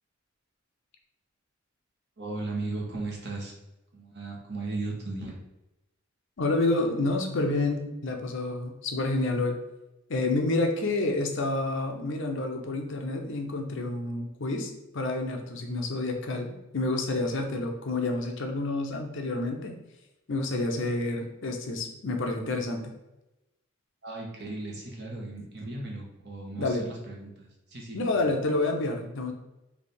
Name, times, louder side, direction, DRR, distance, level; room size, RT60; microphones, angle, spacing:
voice 1, 2.2-3.5 3.9-5.4 24.0-28.3, right 2 dB, 55° right, -2 dB, 1.1 m, -36 dB
voice 2, 6.4-9.6 10.1-19.8 20.3-22.9 26.6-26.9 27.9-29.3, left 2 dB, 65° left, 3 dB, 0.7 m, -29 dB
3.4 x 2.7 x 4.2 m, 0.96 s
head